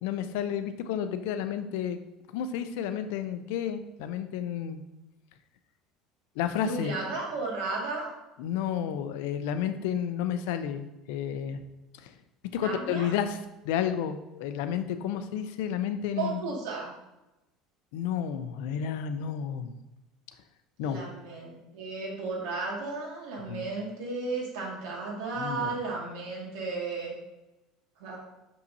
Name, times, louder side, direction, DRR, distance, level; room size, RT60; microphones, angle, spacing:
voice 1, 0.0-2.0 2.3-4.8 6.4-7.0 8.4-11.6 12.0-12.1 12.5-13.4 13.6-16.4 17.9-19.7 20.8-21.0 23.5-23.6 25.4-25.7, left 9 dB, 75° left, 10 dB, 0.5 m, -31 dB
voice 2, 6.6-8.1 12.6-13.1 16.2-16.9 20.8-27.1 28.0-28.2, right 3 dB, 80° right, -3 dB, 2.1 m, -34 dB
6.4 x 5.5 x 2.7 m, 0.99 s
cardioid pair, 165°, 0 cm